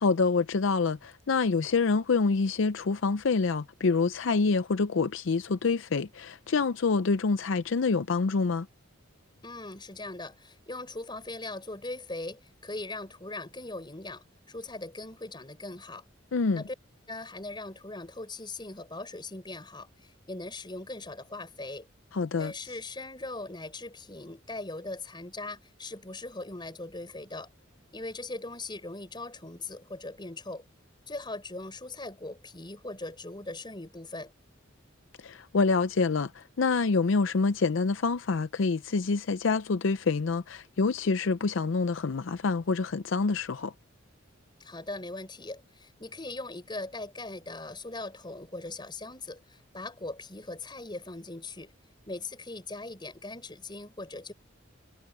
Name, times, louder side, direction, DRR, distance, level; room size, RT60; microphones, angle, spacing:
voice 1, 0.0-8.7 16.3-16.6 22.1-22.5 35.2-43.7, left 4 dB, 65° left, 0.5 m, -26 dB
voice 2, 9.4-16.0 16.5-16.7 17.1-21.9 22.4-27.5 27.9-30.6 31.1-34.3 44.6-51.7 52.1-54.3, left 2 dB, 20° left, 4.8 m, -40 dB
head